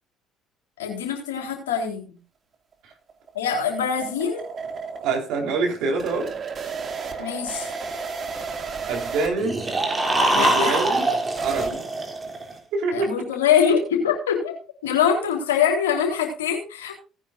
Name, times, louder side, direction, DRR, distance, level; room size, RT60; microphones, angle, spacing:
voice 1, 0.8-2.2 3.3-4.5 7.2-7.7 10.3-10.8 12.9-14.6 14.8-17.0, left 7 dB, 75° left, 1 dB, 4.1 m, -23 dB
sound 1, 2.7-11.7, right 5 dB, 40° right, 2.5 m, -34 dB
voice 2, 5.0-6.3 8.9-9.6 10.3-11.0 11.4-11.8 12.7-13.1, right 3 dB, 60° right, 2 dB, 4.1 m, -25 dB
sound 2, 9.4-12.5, right 1 dB, 25° right, 3.5 m, -23 dB
18.0 x 9.9 x 2.7 m, 0.33 s
figure-of-eight pair, 50°, 0 cm